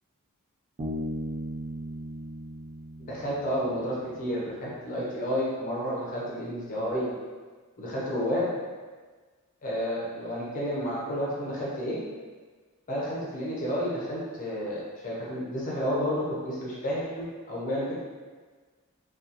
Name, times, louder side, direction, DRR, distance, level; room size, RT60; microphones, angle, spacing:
Bass guitar, 0.8-4.3, equal, 30° right, 0.3 m, -37 dB
voice 1, 3.0-7.1 7.8-8.5 9.6-12.0 12.9-18.0, equal, 35° left, -6 dB, 0.5 m, -31 dB
2.7 x 2.3 x 2.4 m, 1.4 s
head